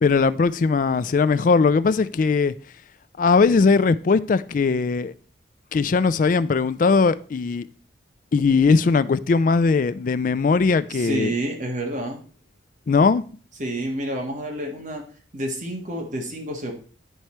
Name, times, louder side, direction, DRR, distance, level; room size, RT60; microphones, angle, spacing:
voice 1, 0.0-2.5 3.2-5.1 5.7-7.7 8.3-11.3 12.9-13.2, left 4 dB, 45° left, 0.3 m, -19 dB
voice 2, 10.9-12.2 13.6-15.0 15.3-16.7, right 1 dB, 40° right, 1.5 m, -29 dB
9.2 x 4.7 x 4.3 m
head